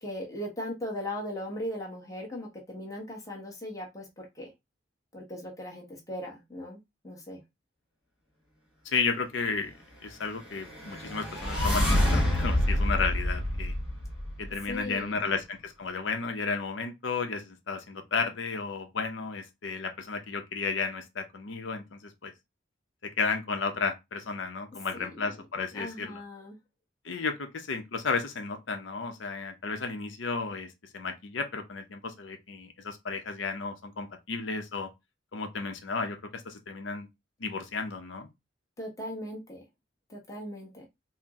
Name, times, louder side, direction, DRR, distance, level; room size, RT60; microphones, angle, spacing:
voice 1, 0.0-4.5 5.1-7.4 14.7-15.1 24.9-25.1 25.7-26.6 38.8-39.6 40.1-40.9, left 1 dB, 15° left, 1.1 m, -38 dB
voice 2, 8.8-9.7 10.0-13.7 14.4-22.3 23.0-26.2 27.0-34.9 35.3-36.2 36.4-37.1 37.4-38.3, left 4 dB, 80° left, 0.6 m, -33 dB
sound 1, 10.6-14.7, left 1 dB, 5° right, 1.2 m, -27 dB
4.2 x 2.0 x 3.5 m
head